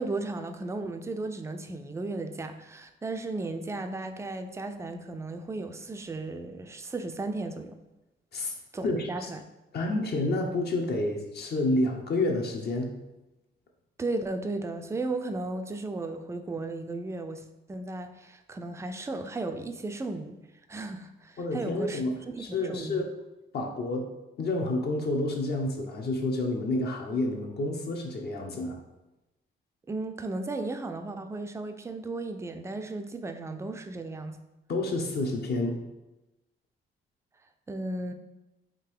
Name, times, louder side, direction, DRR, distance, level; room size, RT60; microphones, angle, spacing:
voice 1, 0.0-7.8 8.7-9.4 14.0-20.3 20.7-23.1 29.9-34.4 37.7-38.1, right 2 dB, 15° right, 7 dB, 0.4 m, -35 dB
voice 2, 8.8-9.3 9.7-12.9 21.4-23.1 23.5-24.1 24.4-28.8 34.7-35.8, left 2 dB, 55° left, 2 dB, 0.8 m, -29 dB
3.8 x 2.7 x 4.6 m, 0.98 s
cardioid pair, 90°, 20 cm